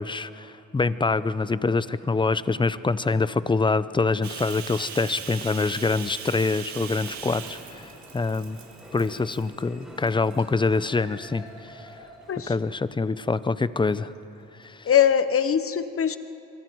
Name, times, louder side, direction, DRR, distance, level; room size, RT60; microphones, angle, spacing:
voice 1, 0.0-7.8 8.1-8.6 8.9-11.9 12.5-14.1 14.6-14.9, left 3 dB, 15° left, 16 dB, 0.6 m, -25 dB
Bathtub (filling or washing), 4.2-9.6 10.0-10.4 11.0-11.8, right 7 dB, 65° right, 1.8 m, -40 dB
sound 1, 6.7-13.0, equal, ahead, 6.1 m, -47 dB
voice 2, 14.9-16.2, left 8 dB, 45° left, 12 dB, 1.0 m, -21 dB
26.0 x 23.5 x 4.7 m, 2.8 s
cardioid pair, 90°, 30 cm